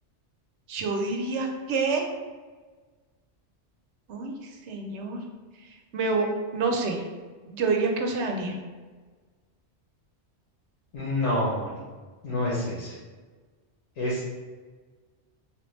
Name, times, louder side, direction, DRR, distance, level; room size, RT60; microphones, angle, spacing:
voice 1, 0.7-2.0 4.1-4.3 4.7-5.2 5.9-6.3 6.5-7.0 7.5-8.6, right 3 dB, 75° right, 3 dB, 0.9 m, -27 dB
voice 2, 10.9-11.8 12.2-12.9 14.0-14.2, left 1 dB, 80° left, -7 dB, 1.3 m, -27 dB
3.6 x 2.9 x 3.1 m, 1.4 s
omnidirectional pair, 1.2 m